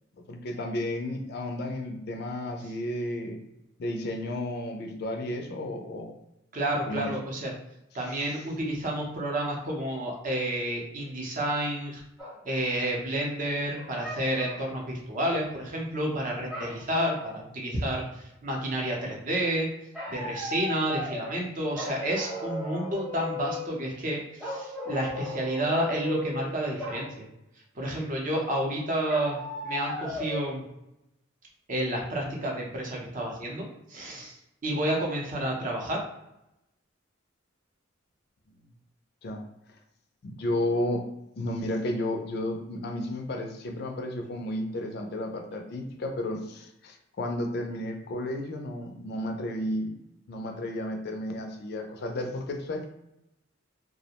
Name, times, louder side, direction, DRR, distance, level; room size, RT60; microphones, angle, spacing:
voice 1, 0.3-3.4 3.8-6.1 6.9-7.1 39.2-39.4 40.2-41.0 41.4-49.9 50.3-52.9, left 1 dB, 55° left, 4 dB, 0.4 m, -32 dB
voice 2, 6.5-7.5 7.9-12.0 12.4-19.7 20.1-27.3 27.8-29.4 29.6-30.6 31.7-34.4 34.6-36.0, right 1 dB, 40° right, -1 dB, 0.6 m, -30 dB
sound 1, 12.2-12.4 13.7-14.7 16.5-17.4 19.9-21.4 21.7-23.8 24.4-26.5 26.8-27.1 29.1-30.5, left 1 dB, 5° right, 0.7 m, -36 dB
2.4 x 2.0 x 2.8 m, 0.86 s
head